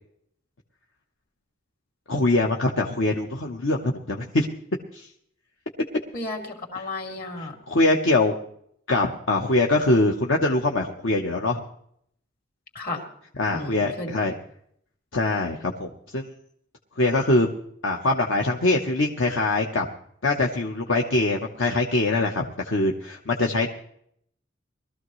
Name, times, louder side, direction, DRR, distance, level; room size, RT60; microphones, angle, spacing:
voice 1, 2.1-4.5 4.9-5.1 7.4-8.3 8.9-11.6 13.4-14.3 15.1-16.3 17.0-17.5 17.8-19.9 20.2-23.7, left 2 dB, 70° left, 1 dB, 1.0 m, -23 dB
voice 2, 6.1-7.5 12.7-13.1 13.5-14.3, left 2 dB, 50° left, 2 dB, 2.7 m, -33 dB
21.0 x 13.5 x 3.1 m, 0.69 s
head